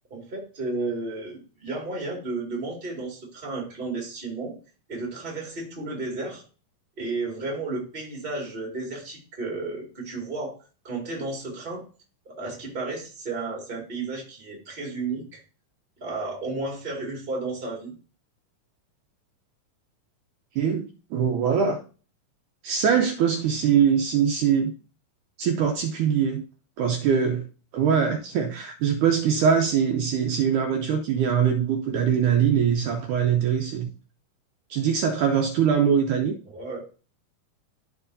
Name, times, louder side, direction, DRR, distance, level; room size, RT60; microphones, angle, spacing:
voice 1, 0.1-4.5 4.9-6.4 7.0-10.6 10.8-11.8 12.3-15.4 16.0-17.9 36.5-36.8, right 3 dB, 20° right, 1.8 m, -33 dB
voice 2, 20.6-21.8 22.6-24.7 25.4-26.4 26.8-27.5 27.7-33.9 34.7-36.4, right 7 dB, 75° right, 2.1 m, -22 dB
13.5 x 4.6 x 2.6 m
omnidirectional pair, 3.9 m